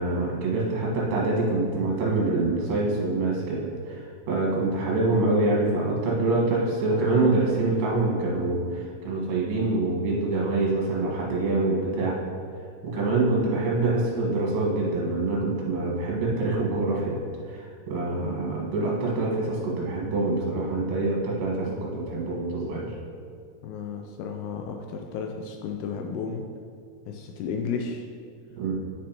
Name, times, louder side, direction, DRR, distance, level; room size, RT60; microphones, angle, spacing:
voice 1, 0.0-12.1 12.8-17.2 17.5-22.9 28.6-28.7, right 2 dB, 65° right, -4 dB, 3.1 m, -25 dB
voice 2, 23.6-26.5 27.1-28.1, left 5 dB, 85° left, 2 dB, 2.4 m, -33 dB
9.7 x 6.1 x 3.0 m, 2.2 s
omnidirectional pair, 5.1 m